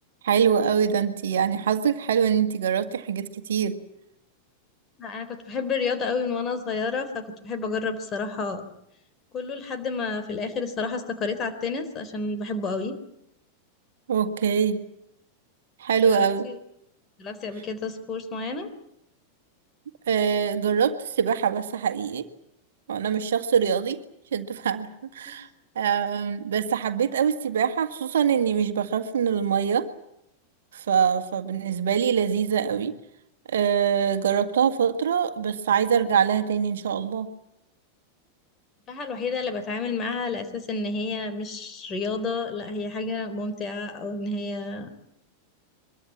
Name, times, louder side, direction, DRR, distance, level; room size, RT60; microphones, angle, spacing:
voice 1, 0.2-3.8 14.1-14.8 15.8-16.5 20.1-22.3 22.9-24.0 24.3-25.5 25.8-29.9 30.7-32.9 33.5-37.3, right 7 dB, 60° right, 8 dB, 1.8 m, -24 dB
voice 2, 5.0-8.6 9.3-12.9 16.0-16.6 17.2-18.7 25.3-25.4 38.9-44.9, left 4 dB, 30° left, 9 dB, 3.8 m, -30 dB
24.0 x 22.5 x 8.6 m, 0.78 s
figure-of-eight pair, 90°, 0 cm